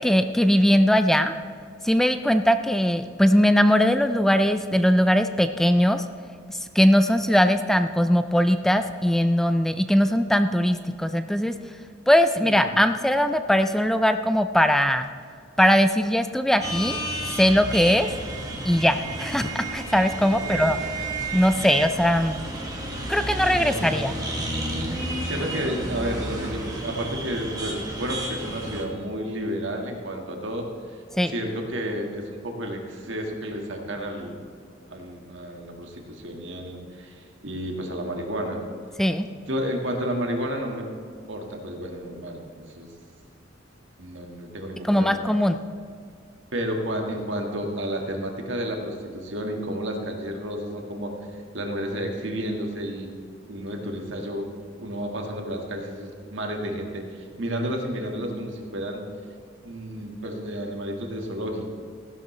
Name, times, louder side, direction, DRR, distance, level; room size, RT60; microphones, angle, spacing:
voice 1, 0.0-1.3 1.8-6.0 6.5-11.5 12.1-15.1 15.6-17.0 17.4-18.1 18.6-20.8 21.3-22.4 23.1-24.1 31.1-31.3 39.0-39.3 44.8-45.6, equal, ahead, 9 dB, 0.3 m, -20 dB
sound 1, 16.6-28.8, right 1 dB, 20° right, 1.7 m, -31 dB
voice 2, 23.6-23.9 25.2-30.6 31.3-34.4 34.9-38.6 39.3-40.9 41.3-42.9 44.0-45.2 46.5-51.1 51.5-53.1 53.5-54.5 54.8-59.0 59.6-61.8, equal, 70° right, 1 dB, 1.8 m, -31 dB
15.5 x 11.5 x 3.3 m, 2.2 s
head